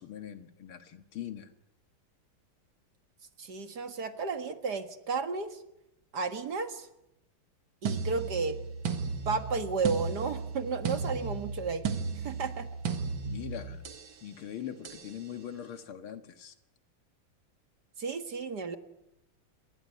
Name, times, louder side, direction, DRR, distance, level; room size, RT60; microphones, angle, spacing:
voice 1, 0.0-1.5 13.2-13.9 14.2-16.5, left 9 dB, 90° left, 9 dB, 2.5 m, -42 dB
voice 2, 3.4-5.6 6.1-6.9 7.8-8.6 9.3-11.9 12.1-12.7 18.0-18.8, right 4 dB, 50° right, 8 dB, 2.2 m, -33 dB
sound 1, 7.9-14.1 14.9-15.1, right 5 dB, 70° right, 2.4 m, -35 dB
26.5 x 21.0 x 9.7 m, 0.85 s
omnidirectional pair, 2.3 m